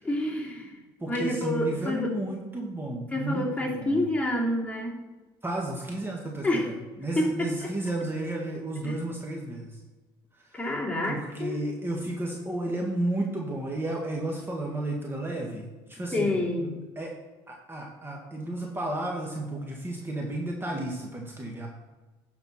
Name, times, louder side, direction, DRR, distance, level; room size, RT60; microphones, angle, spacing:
voice 1, 0.0-0.8 1.1-2.1 3.1-5.0 6.4-6.7 7.2-7.5 8.8-8.9 10.5-11.6 16.1-16.8, left 1 dB, 10° left, -3 dB, 2.8 m, -28 dB
voice 2, 1.0-4.1 5.4-9.8 10.3-10.6 11.0-17.1 17.5-21.7, right 1 dB, 20° right, 0 dB, 1.8 m, -33 dB
10.5 x 4.6 x 5.9 m, 1.3 s
supercardioid pair, 80°, 12 cm